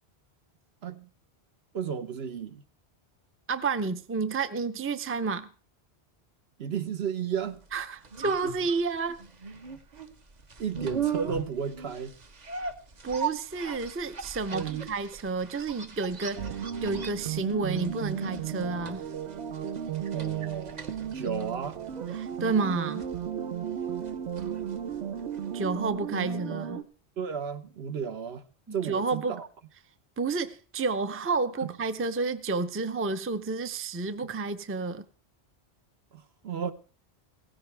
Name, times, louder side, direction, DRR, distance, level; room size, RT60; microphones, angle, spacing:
voice 1, 1.7-2.6 6.6-7.6 10.6-12.1 14.5-14.9 20.1-20.8 21.1-21.8 26.3-26.4 27.2-28.4 28.7-29.5 31.6-31.8 36.1-36.7, right 7 dB, 70° right, 1.2 m, -33 dB
voice 2, 3.5-5.5 7.7-9.2 13.0-19.1 22.1-23.1 25.5-26.8 28.7-29.4 30.2-35.0, right 4 dB, 15° right, 0.5 m, -30 dB
sound 1, 7.6-25.7 25.9-26.0, right 6 dB, 40° right, 1.0 m, -39 dB
sound 2, 16.4-26.8, right 9 dB, 90° right, 1.2 m, -34 dB
16.5 x 15.5 x 3.4 m
omnidirectional pair, 1.1 m